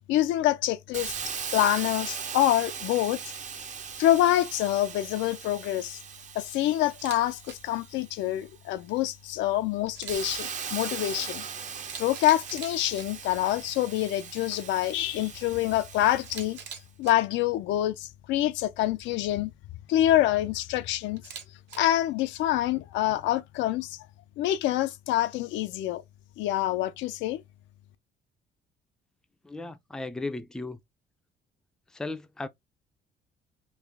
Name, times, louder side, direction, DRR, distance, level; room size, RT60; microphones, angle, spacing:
voice 1, 0.1-1.1 1.5-3.2 4.0-6.0 6.3-11.5 12.0-16.6 17.0-19.5 19.9-21.2 21.8-24.0 24.4-26.0 26.4-27.4, left 13 dB, 90° left, 0.4 m, -26 dB
Hiss, 0.9-8.5 9.0-16.8, right 6 dB, 40° right, 0.6 m, -39 dB
Camera, 6.9-7.2 7.4-7.5 9.9-10.5 11.4-11.5 11.8-13.0 16.2-17.1 21.2-21.8, right 7 dB, 70° right, 0.8 m, -41 dB
voice 2, 29.4-30.8 31.9-32.5, left 2 dB, 5° left, 0.4 m, -36 dB
3.2 x 2.4 x 3.4 m
cardioid pair, 115°, 19 cm